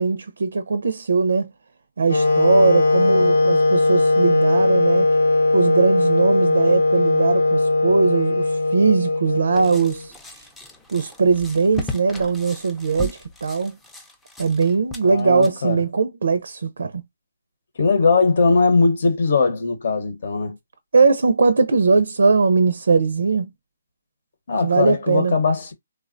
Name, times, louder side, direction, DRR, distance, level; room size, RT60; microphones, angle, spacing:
voice 1, 0.0-1.5 2.0-5.1 5.5-10.1 10.9-13.8 14.4-17.0 20.9-23.5 24.6-25.4, right 4 dB, 75° right, 0.4 m, -20 dB
Wind instrument woodwind instrument, 2.1-10.1, left 2 dB, 85° left, 1.0 m, -19 dB
sound 1, 9.5-15.5, left 1 dB, 5° left, 0.5 m, -36 dB
voice 2, 15.0-15.8 17.8-20.6 24.5-25.7, left 4 dB, 60° left, 0.9 m, -20 dB
3.4 x 2.1 x 2.5 m
hypercardioid pair, 155°, 0 cm